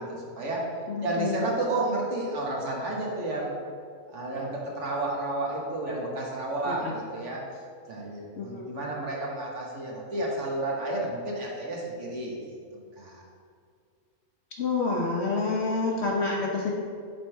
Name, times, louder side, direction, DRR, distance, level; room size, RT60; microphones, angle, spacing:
voice 1, 0.0-0.7 1.0-3.6 4.1-7.4 7.9-12.5 13.0-13.2, right 2 dB, 55° right, -3 dB, 1.5 m, -31 dB
voice 2, 0.9-1.4 6.6-6.9 8.4-8.7 14.6-16.7, left 3 dB, 55° left, -2 dB, 0.9 m, -28 dB
8.5 x 3.7 x 4.5 m, 2.2 s
omnidirectional pair, 1.5 m